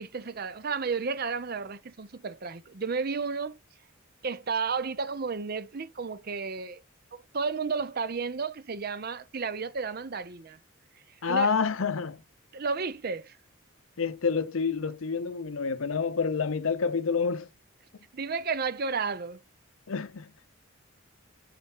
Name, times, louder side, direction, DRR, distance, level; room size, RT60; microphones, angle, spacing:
voice 1, 0.0-3.6 4.2-6.8 7.1-10.6 11.3-11.5 12.5-13.4 18.1-19.4, right 5 dB, 45° right, 0.6 m, -32 dB
voice 2, 11.2-12.2 14.0-17.5 19.9-20.3, left 5 dB, 75° left, 0.7 m, -28 dB
6.5 x 5.8 x 2.9 m
head